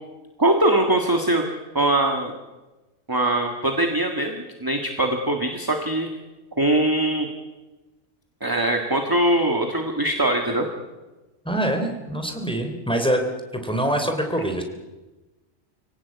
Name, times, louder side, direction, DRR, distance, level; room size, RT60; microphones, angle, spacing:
voice 1, 0.4-2.3 3.1-6.1 6.6-7.3 8.4-10.7, right 1 dB, 15° right, 4 dB, 1.8 m, -22 dB
voice 2, 11.4-13.2 13.5-14.6, right 1 dB, 5° left, 4 dB, 3.3 m, -24 dB
25.0 x 17.5 x 8.4 m, 1.1 s
omnidirectional pair, 1.3 m